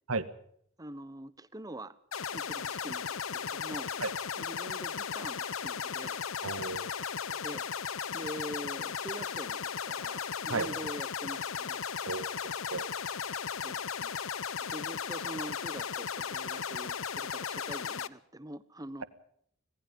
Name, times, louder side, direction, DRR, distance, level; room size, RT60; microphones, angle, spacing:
voice 1, 0.8-2.0 2.3-3.9 4.4-6.2 7.4-7.7 8.1-11.8 13.6-14.1 14.7-19.0, right 1 dB, 20° right, 15 dB, 1.2 m, -44 dB
sound 1, 2.1-18.1, left 7 dB, 75° left, 0.9 m, -36 dB
voice 2, 6.4-7.4 10.5-10.7 12.0-12.9, right 3 dB, 90° right, 13 dB, 1.6 m, -35 dB
26.5 x 19.0 x 5.4 m, 0.68 s
head